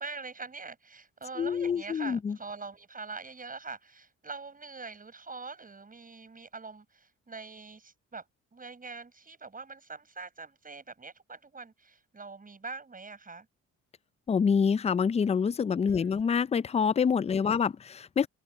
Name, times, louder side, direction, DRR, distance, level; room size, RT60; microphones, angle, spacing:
voice 1, 0.0-8.2 8.5-13.5 15.9-16.2 17.3-17.6, right 4 dB, 30° right, 6.9 m, -44 dB
voice 2, 1.4-2.4 14.3-18.3, left 6 dB, 20° left, 0.4 m, -26 dB
open air
cardioid pair, 90°, 30 cm